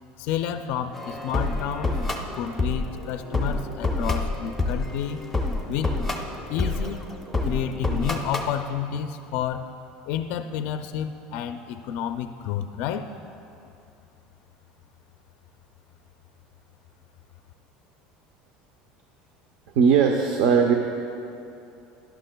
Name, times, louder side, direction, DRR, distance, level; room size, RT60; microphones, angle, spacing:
voice 1, 0.2-2.0 2.3-5.2 5.7-6.0 6.5-7.0 7.4-9.6 10.1-13.1, left 9 dB, 55° left, 8 dB, 0.4 m, -30 dB
sound 1, 0.9-8.5, left 2 dB, ahead, 0.7 m, -28 dB
voice 2, 19.7-20.7, right 6 dB, 65° right, 2 dB, 0.7 m, -18 dB
18.0 x 11.5 x 2.3 m, 2.6 s
cardioid pair, 175°, 3 cm